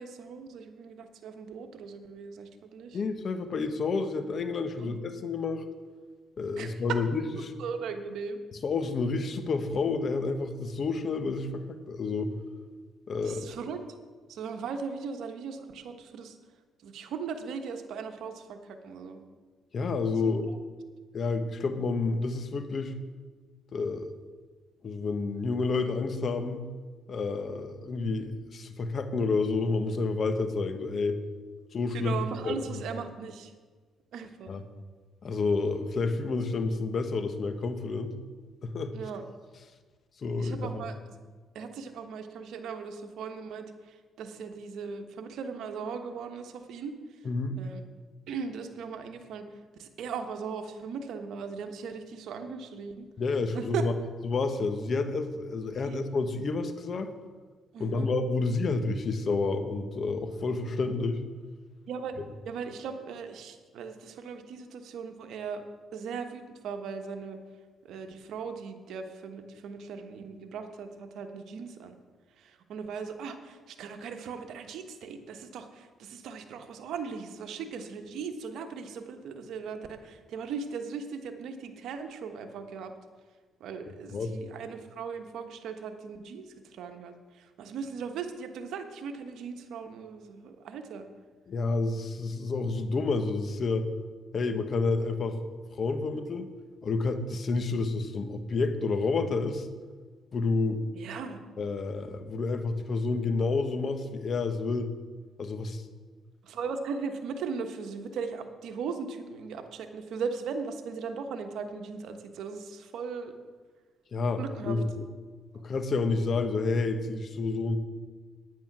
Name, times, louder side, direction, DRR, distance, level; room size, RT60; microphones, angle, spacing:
voice 1, 0.0-3.0 4.8-5.0 6.6-7.0 7.3-8.4 13.2-13.8 14.3-16.4 16.8-19.2 20.2-20.3 31.9-33.5 34.1-34.6 38.9-39.2 40.4-41.2 41.5-46.9 47.6-47.8 48.3-49.4 49.7-53.1 53.5-53.8 55.8-56.0 57.7-58.1 61.9-62.2 62.4-65.6 65.9-67.4 67.8-71.9 72.4-82.9 83.6-91.1 100.9-101.4 106.4-113.3 114.4-114.8, right 5 dB, 75° right, 6 dB, 1.2 m, -38 dB
voice 2, 2.9-5.6 6.4-7.5 8.6-12.3 13.1-13.5 19.7-20.5 21.1-22.9 23.7-24.1 24.8-26.6 27.1-31.2 31.7-32.1 32.4-32.6 34.5-34.6 35.2-38.1 38.6-38.9 40.2-40.8 47.2-47.6 53.2-53.9 54.2-57.1 57.8-61.2 84.1-84.3 91.5-93.9 94.3-95.4 95.8-96.5 96.8-99.7 100.3-100.8 101.6-104.9 105.4-105.8 114.1-115.0 115.6-117.8, left 3 dB, 50° left, 8 dB, 1.2 m, -29 dB
9.6 x 9.6 x 6.0 m, 1.4 s
cardioid pair, 75°, 0 cm